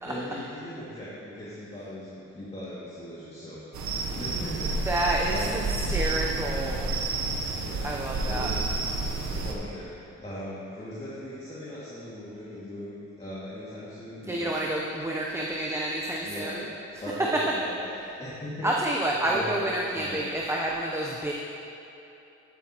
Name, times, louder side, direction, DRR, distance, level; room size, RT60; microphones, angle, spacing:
voice 1, 0.0-3.6 4.1-4.7 5.3-5.7 7.6-7.9 8.2-8.5 9.3-9.9 10.2-14.6 16.2-16.6 17.0-17.9 18.2-18.7 19.3-19.5 19.9-20.2, equal, 20° left, -10 dB, 2.3 m, -39 dB
sound 1, 3.7-9.5, right 3 dB, 65° right, 1.1 m, -30 dB
voice 2, 4.9-6.9 7.8-8.5 14.3-16.7 18.6-21.3, right 1 dB, 10° right, -2 dB, 0.8 m, -29 dB
12.0 x 8.6 x 3.0 m, 3.0 s
cardioid pair, 90°, 30 cm